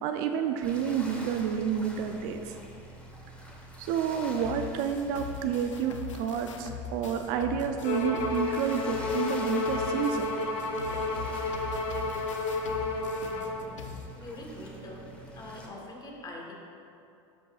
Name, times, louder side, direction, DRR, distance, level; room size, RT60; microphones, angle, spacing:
voice 1, 0.0-2.5 3.8-10.3, right 7 dB, 60° right, 6 dB, 0.5 m, -30 dB
sound 1, 0.6-15.7, right 1 dB, 5° left, 1.2 m, -47 dB
sound 2, 4.4-14.1, left 6 dB, 90° left, 0.6 m, -42 dB
Bowed string instrument, 7.8-13.6, left 3 dB, 60° left, 1.1 m, -31 dB
voice 2, 14.1-15.1 15.3-16.5, left 1 dB, 25° left, -1 dB, 1.5 m, -43 dB
12.0 x 5.4 x 2.5 m, 2.6 s
hypercardioid pair, 90°, 16 cm